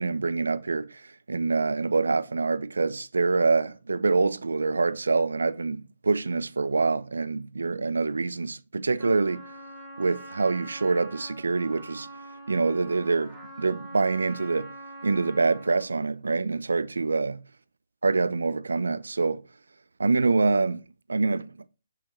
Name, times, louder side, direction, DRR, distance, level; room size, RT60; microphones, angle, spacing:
voice 1, 0.0-9.4 10.0-12.1 12.5-14.7 15.0-17.4 18.0-19.4 20.0-20.8 21.1-21.5, right 3 dB, 85° right, 0.4 m, -25 dB
Trumpet, 9.0-15.9, right 1 dB, 10° right, 1.8 m, -44 dB
6.3 x 5.7 x 3.0 m
hypercardioid pair, 140°, 0 cm